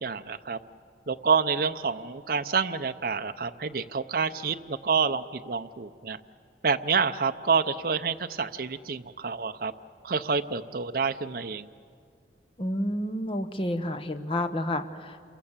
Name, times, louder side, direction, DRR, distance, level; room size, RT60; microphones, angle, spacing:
voice 1, 0.0-0.6 1.1-6.2 6.6-9.7 10.0-11.7, right 5 dB, 55° right, 8 dB, 0.6 m, -28 dB
voice 2, 12.6-15.2, left 1 dB, 30° left, 8 dB, 1.0 m, -30 dB
28.0 x 23.0 x 7.3 m, 2.2 s
head